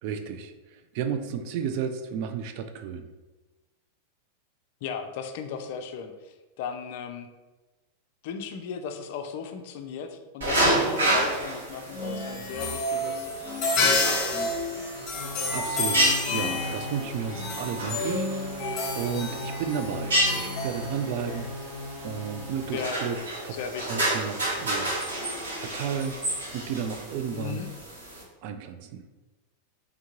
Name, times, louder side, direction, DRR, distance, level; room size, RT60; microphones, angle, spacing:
voice 1, 0.0-3.1 15.5-21.6 22.0-23.2 23.4-23.6 23.9-24.9 25.6-26.2 26.5-27.6 28.4-29.1, right 7 dB, 45° right, 8 dB, 0.3 m, -33 dB
voice 2, 4.8-7.3 8.2-13.3 13.8-14.2 22.6-23.2 23.5-24.0 27.3-27.7, left 6 dB, 50° left, 7 dB, 0.4 m, -36 dB
sound 1, 10.4-28.2, right 1 dB, 70° right, 1.4 m, -31 dB
sound 2, 11.9-21.4, left 2 dB, 35° left, 0.8 m, -30 dB
sound 3, 15.1-22.8, left 1 dB, 30° right, 1.3 m, -38 dB
3.5 x 3.5 x 2.9 m, 1.2 s
figure-of-eight pair, 90°, 0 cm